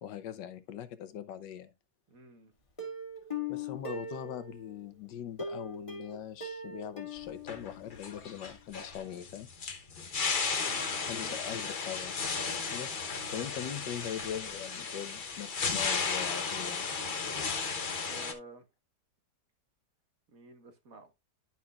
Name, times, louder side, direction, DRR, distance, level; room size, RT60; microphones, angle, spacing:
voice 1, 0.0-1.7 3.5-9.5 11.0-12.2 12.7-16.9, left 9 dB, 85° left, 1.5 m, -41 dB
voice 2, 2.1-2.5 10.6-11.4 18.0-18.7 20.3-21.1, right 2 dB, 55° right, 1.7 m, -51 dB
Plucked string instrument, 2.8-4.8 5.4-8.2 8.5-8.6 8.9-9.0, left 3 dB, 20° left, 1.7 m, -40 dB
sound 1, 7.2-18.3, left 5 dB, 40° left, 0.8 m, -34 dB
11.0 x 5.8 x 2.3 m
omnidirectional pair, 1.9 m